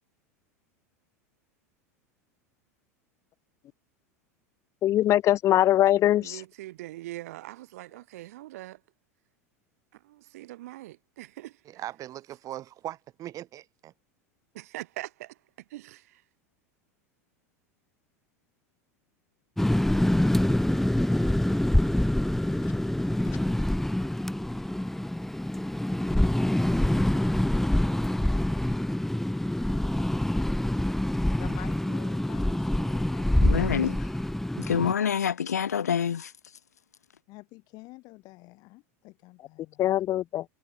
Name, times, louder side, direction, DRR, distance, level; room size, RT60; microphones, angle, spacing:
voice 1, 4.8-6.4 39.8-40.4, left 13 dB, 35° left, 0.4 m, -22 dB
voice 2, 6.2-8.8 9.9-11.8 14.5-16.2, right 16 dB, 70° right, 5.0 m, -42 dB
voice 3, 11.7-13.9, right 13 dB, 40° right, 6.1 m, -39 dB
sound 1, 19.6-34.9, left 1 dB, 5° left, 1.7 m, -26 dB
voice 4, 31.4-33.6 37.3-39.8, left 23 dB, 50° left, 2.6 m, -48 dB
voice 5, 33.4-34.1 34.6-36.3, left 8 dB, 85° left, 2.2 m, -27 dB
hypercardioid pair, 90°, 8 cm